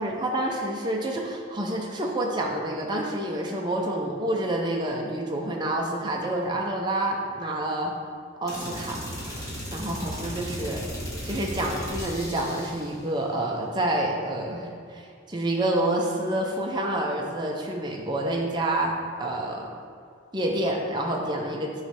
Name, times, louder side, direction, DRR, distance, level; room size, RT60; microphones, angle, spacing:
voice 1, 0.0-7.9 8.4-9.0 9.7-10.8 11.2-18.9 19.2-19.7 20.3-21.8, right 1 dB, 20° right, -1 dB, 0.6 m, -28 dB
sound 1, 8.5-12.9, equal, 15° left, 1.4 m, -35 dB
9.2 x 3.2 x 5.3 m, 2.2 s
head